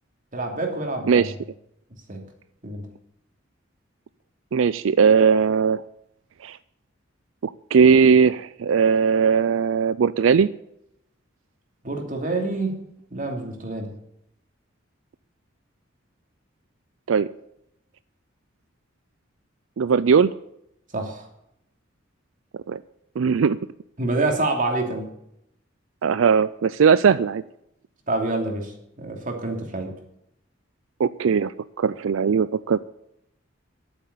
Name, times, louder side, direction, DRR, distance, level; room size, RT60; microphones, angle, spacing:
voice 1, 0.3-1.3 2.1-2.2 2.6-2.9 11.8-13.9 20.9-21.3 24.0-25.1 28.1-28.7 29.0-29.9, right 2 dB, 45° right, 3 dB, 2.8 m, -27 dB
voice 2, 4.5-5.8 6.4-6.6 7.4-10.5 17.1-17.3 19.8-20.3 22.7-22.8 23.2-23.6 26.0-27.4 31.0-31.5 31.8-32.8, right 6 dB, 90° right, 15 dB, 0.4 m, -19 dB
11.5 x 8.8 x 8.4 m, 0.79 s
head